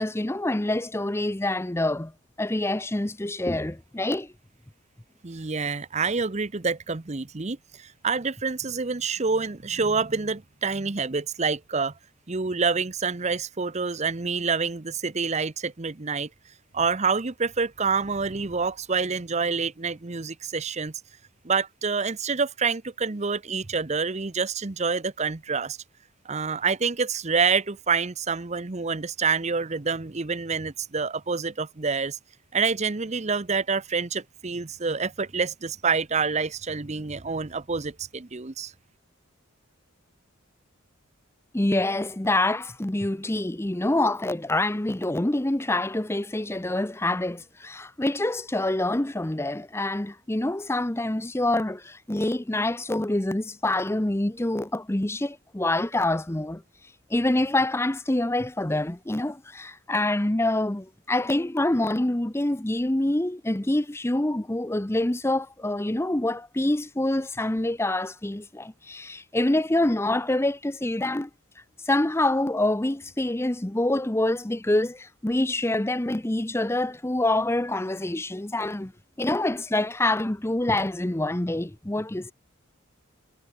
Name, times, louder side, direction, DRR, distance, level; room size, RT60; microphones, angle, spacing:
voice 1, 0.0-2.1 2.4-4.3 41.5-56.6 57.1-71.3 71.8-78.9 79.2-82.3, left 1 dB, 10° left, 0.7 m, -26 dB
voice 2, 5.2-11.9 12.3-16.3 16.7-20.9 21.4-25.8 26.3-32.2 32.5-38.7, right 5 dB, 35° right, 0.8 m, -27 dB
head